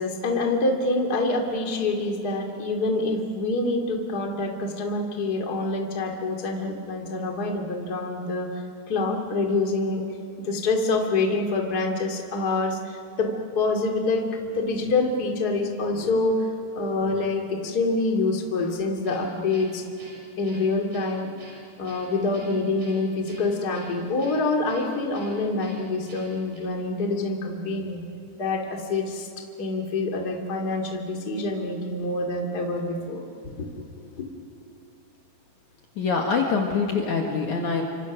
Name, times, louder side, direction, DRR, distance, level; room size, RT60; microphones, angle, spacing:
voice 1, 0.0-8.5 8.9-10.0 10.4-16.5 16.8-19.8 20.4-21.3 21.8-28.0 28.4-29.3 29.6-33.7 34.2-34.3, left 3 dB, 30° left, 1 dB, 2.6 m, -26 dB
Guitar, 19.0-26.6, right 1 dB, 75° right, 8.5 m, -48 dB
voice 2, 36.0-37.8, left 5 dB, 55° left, 1 dB, 2.9 m, -24 dB
29.5 x 25.5 x 6.2 m, 2.6 s
omnidirectional pair, 4.4 m